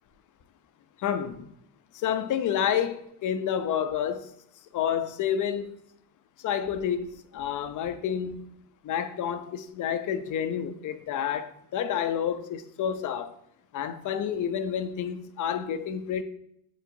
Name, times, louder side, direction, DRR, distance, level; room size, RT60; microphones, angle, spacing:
voice 1, 1.0-1.5 1.9-4.3 4.7-5.8 6.4-8.5 8.8-13.3 13.7-16.2, left 9 dB, 40° left, 0.6 m, -29 dB
7.7 x 4.6 x 2.6 m
supercardioid pair, 105°, 46 cm